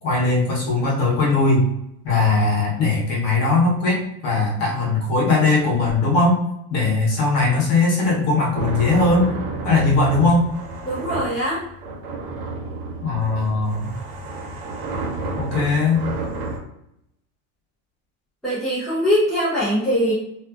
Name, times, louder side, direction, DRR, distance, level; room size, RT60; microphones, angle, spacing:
voice 1, 0.0-1.7 2.0-6.4 6.7-9.3 9.6-10.5 13.0-14.0 15.4-16.1, left 3 dB, 35° left, -3 dB, 0.9 m, -19 dB
sound 1, 8.5-16.6, right 3 dB, 85° right, 1.1 m, -31 dB
voice 2, 10.8-11.6 18.4-20.1, equal, ahead, -11 dB, 0.4 m, -21 dB
2.5 x 2.5 x 2.3 m, 0.80 s
cardioid pair, 175°, 43 cm